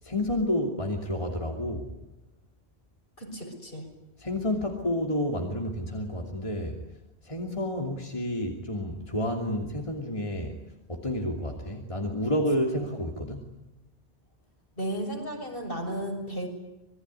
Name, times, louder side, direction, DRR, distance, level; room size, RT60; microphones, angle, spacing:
voice 1, 0.0-1.9 4.2-6.8 7.2-10.6 10.9-13.5, left 1 dB, 30° left, 1 dB, 2.9 m, -30 dB
voice 2, 3.2-3.9 14.8-16.5, right 1 dB, 55° left, 3 dB, 6.9 m, -34 dB
27.0 x 22.0 x 9.9 m, 0.95 s
omnidirectional pair, 1.1 m